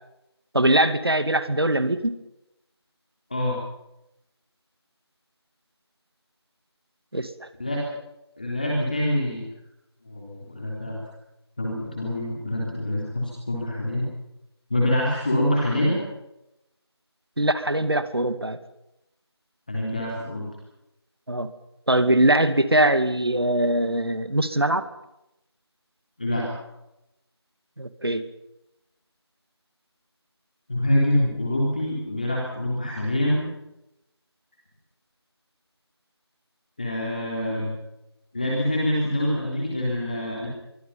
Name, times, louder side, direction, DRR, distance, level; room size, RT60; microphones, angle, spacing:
voice 1, 0.5-2.2 7.1-7.5 17.4-18.6 21.3-21.5 21.9-24.8 27.8-28.2, right 1 dB, 60° right, 11 dB, 2.5 m, -22 dB
voice 2, 8.4-9.4 10.1-11.0 11.6-14.1 14.7-16.0 19.7-20.5 26.2-26.5 30.7-33.4 36.8-37.7 38.3-40.5, left 1 dB, 20° left, -3 dB, 3.6 m, -25 dB
25.0 x 24.0 x 5.7 m, 0.86 s
figure-of-eight pair, 175°, 14 cm